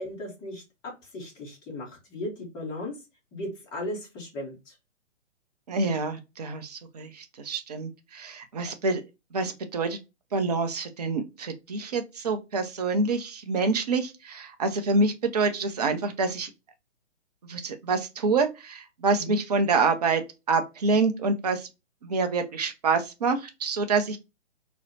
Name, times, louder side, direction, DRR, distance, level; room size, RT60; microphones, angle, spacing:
voice 1, 0.0-3.0 3.3-4.7 19.2-19.4, left 1 dB, 10° left, 0.7 m, -37 dB
voice 2, 5.7-7.1 7.4-9.0 9.3-10.0 10.3-16.5 17.5-20.2 20.5-21.7 22.0-24.2, right 3 dB, 35° right, 0.4 m, -26 dB
4.1 x 2.0 x 2.6 m
figure-of-eight pair, 135°, 38 cm